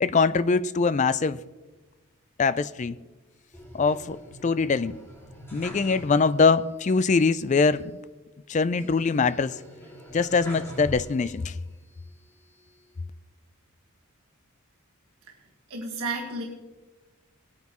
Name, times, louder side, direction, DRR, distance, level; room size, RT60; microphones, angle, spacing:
voice 1, 0.0-1.4 2.4-3.0 3.7-5.0 5.5-8.0 8.5-9.6 10.1-11.5, left 4 dB, 30° left, 0.3 m, -23 dB
sound 1, 3.5-6.6 6.9-7.0 8.8-11.5 12.0-12.9, equal, 10° left, 2.1 m, -44 dB
voice 2, 15.7-16.4, right 3 dB, 75° right, 1.5 m, -31 dB
19.5 x 9.3 x 3.0 m
head